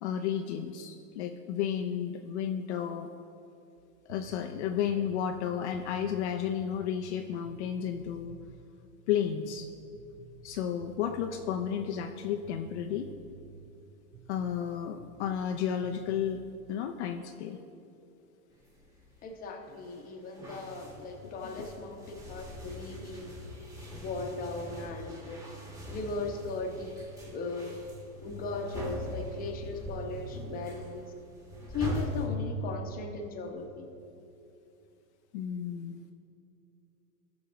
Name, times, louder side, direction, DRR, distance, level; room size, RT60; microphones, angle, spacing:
voice 1, 0.0-3.1 4.1-8.4 9.1-9.7 10.4-13.1 14.3-16.4 16.7-17.6 21.2-21.7 35.3-36.0, left 8 dB, 50° left, 4 dB, 0.6 m, -32 dB
sound 1, 3.8-8.7 9.1-9.7 10.0-14.7 15.0-15.5 15.8-16.5, right 6 dB, 70° right, 0.8 m, -52 dB
sound 2, 18.5-20.0 20.3-32.3, equal, 5° right, 1.4 m, -41 dB
voice 2, 19.2-23.5 24.0-25.4 25.9-27.0 27.3-27.9 28.2-31.1 31.7-33.9, left 3 dB, 20° left, 3 dB, 0.9 m, -38 dB
18.5 x 6.3 x 3.0 m, 2.7 s
supercardioid pair, 145°, 42 cm